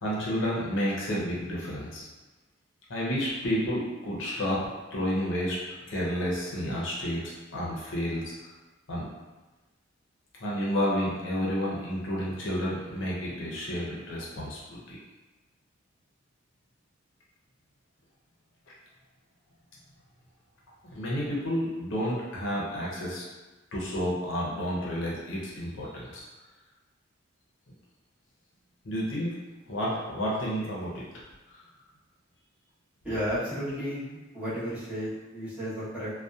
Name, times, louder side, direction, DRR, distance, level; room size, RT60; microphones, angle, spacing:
voice 1, 0.0-2.0 2.9-4.6 4.9-5.6 5.9-8.5 8.9-9.1 10.4-15.0 20.9-23.2 23.7-26.2 28.8-29.3 29.7-31.1 31.5-31.6, equal, 65° left, -5 dB, 0.6 m, -30 dB
voice 2, 33.0-36.1, equal, 5° right, -12 dB, 0.9 m, -33 dB
2.7 x 2.2 x 2.3 m, 1.2 s
head